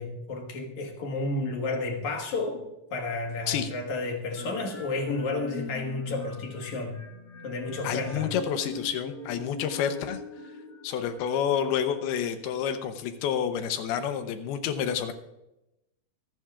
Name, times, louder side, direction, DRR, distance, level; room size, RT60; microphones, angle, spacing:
voice 1, 0.0-2.6 2.9-7.0 7.4-8.3, left 3 dB, 55° left, 2 dB, 2.5 m, -31 dB
sound 1, 4.3-12.1, left 4 dB, 35° left, 2.7 m, -43 dB
voice 2, 7.8-10.2 10.8-15.1, left 8 dB, 80° left, 8 dB, 2.8 m, -29 dB
24.0 x 10.5 x 2.4 m, 0.91 s
omnidirectional pair, 4.5 m